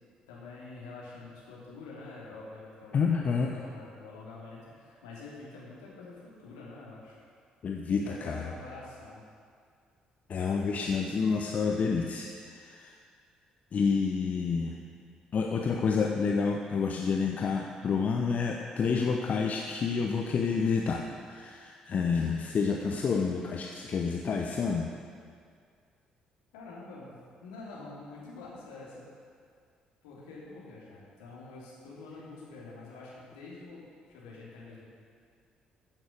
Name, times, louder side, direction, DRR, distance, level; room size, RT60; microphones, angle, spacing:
voice 1, 0.3-7.2 8.0-9.2 26.5-27.1 27.4-29.0 30.0-34.9, left 3 dB, 70° left, -6 dB, 3.2 m, -46 dB
voice 2, 2.9-3.5 7.6-8.4 10.3-12.9 13.7-14.8 15.3-24.9, left 5 dB, 40° left, 2 dB, 0.8 m, -29 dB
14.5 x 7.5 x 6.6 m, 2.2 s
figure-of-eight pair, 45°, 4 cm